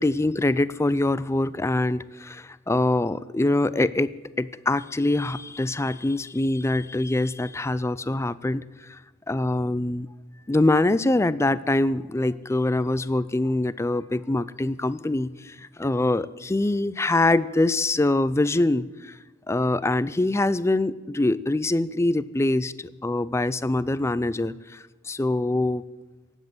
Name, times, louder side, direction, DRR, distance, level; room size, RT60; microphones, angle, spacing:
voice 1, 0.0-9.0 9.3-10.1 10.5-19.2 19.5-25.8, left 2 dB, 15° left, 17 dB, 0.4 m, -24 dB
18.0 x 8.1 x 7.9 m, 1.2 s
head